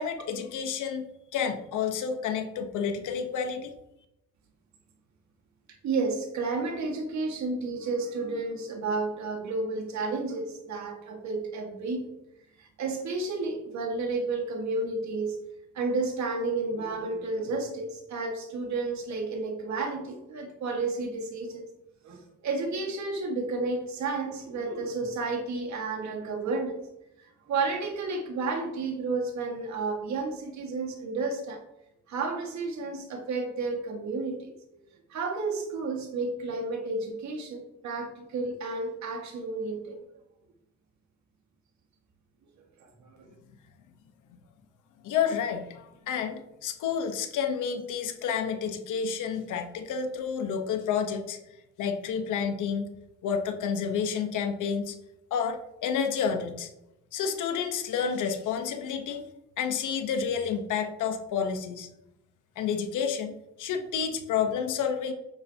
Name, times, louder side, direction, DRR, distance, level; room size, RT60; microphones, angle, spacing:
voice 1, 0.0-3.7 45.0-51.4 51.8-52.9 53.2-54.9 55.3-56.7 57.1-59.2 59.6-61.9 62.6-65.1, left 7 dB, 80° left, 5 dB, 1.2 m, -30 dB
voice 2, 5.8-12.1 12.6-15.4 15.7-21.6 22.0-26.8 27.2-31.6 32.1-34.8 35.1-40.0 42.8-43.3, right 3 dB, 65° right, 2 dB, 1.9 m, -31 dB
8.8 x 8.0 x 2.9 m, 0.89 s
cardioid pair, 90°, 30 cm